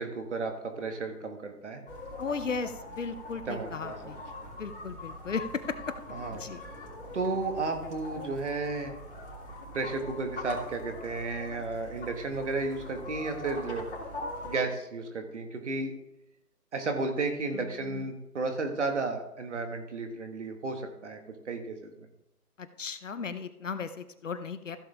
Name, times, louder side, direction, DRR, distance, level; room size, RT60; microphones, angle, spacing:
voice 1, 0.0-1.8 3.5-4.2 6.1-6.5 7.1-8.9 9.7-13.9 14.4-15.9 16.7-21.2 21.5-21.9, right 3 dB, 50° right, 5 dB, 2.0 m, -33 dB
sound 1, 1.9-14.6, left 1 dB, 35° left, 3.4 m, -42 dB
voice 2, 2.2-4.2 4.6-5.8 6.3-6.6 17.5-18.1 22.6-24.8, left 5 dB, 55° left, 11 dB, 0.8 m, -36 dB
15.0 x 6.9 x 3.6 m, 0.88 s
figure-of-eight pair, 160°, 46 cm